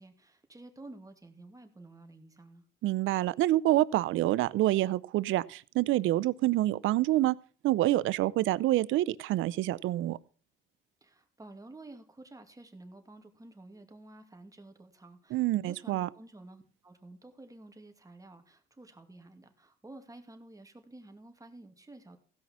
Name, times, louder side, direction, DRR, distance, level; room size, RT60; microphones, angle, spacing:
voice 1, 0.0-2.6 11.0-22.2, right 2 dB, 15° right, 5 dB, 2.5 m, -51 dB
voice 2, 2.8-7.4 7.6-10.2 15.3-16.1, right 15 dB, 85° right, 18 dB, 0.6 m, -27 dB
16.0 x 5.6 x 7.3 m, 0.41 s
cardioid pair, 90°, 20 cm